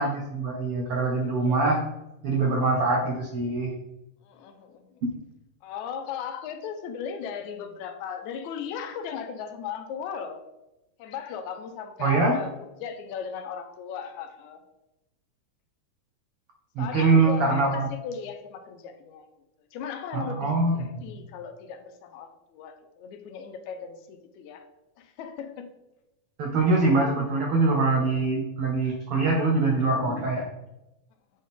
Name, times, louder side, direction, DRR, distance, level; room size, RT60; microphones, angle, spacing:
voice 1, 0.0-1.8 2.2-3.7 12.0-12.4 16.8-17.9 20.1-20.8 26.4-30.5, right 3 dB, 90° right, 0 dB, 1.2 m, -23 dB
voice 2, 4.3-4.9 5.6-10.5 11.0-14.6 16.8-19.3 19.7-20.5 20.8-24.7 25.0-25.7, left 7 dB, 75° left, 7 dB, 1.8 m, -37 dB
8.5 x 4.0 x 3.6 m, 0.94 s
omnidirectional pair, 3.7 m